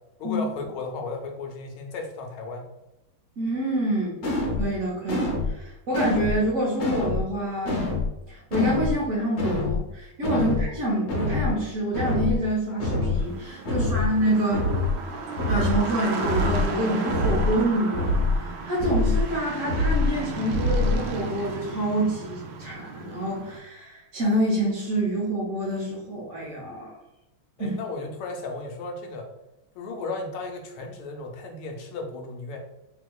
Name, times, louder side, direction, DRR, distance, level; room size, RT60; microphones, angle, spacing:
voice 1, 0.2-2.7 27.6-29.3 29.7-32.6, left 3 dB, 75° left, 2 dB, 1.5 m, -35 dB
voice 2, 3.4-4.2 4.6-7.9 8.3-14.7 15.4-26.9 27.6-27.7, right 1 dB, 55° right, -7 dB, 0.9 m, -27 dB
sound 1, 4.2-4.6 5.1-5.5 5.9-6.4 6.8-7.2 7.6-8.1 8.5-8.9 9.4-9.8 10.2-10.6 11.1-11.5 11.9-12.4 12.8-13.2 13.7-14.1 14.5-14.9 15.4-15.8 16.2-16.7 17.1-17.5 17.9-18.4 18.8-19.2 19.7-20.1 20.5-21.0, left 2 dB, 60° left, 1.0 m, -25 dB
sound 2, 13.2-23.6, right 4 dB, 80° right, 1.4 m, -34 dB
3.7 x 2.8 x 2.2 m, 0.93 s
omnidirectional pair, 2.4 m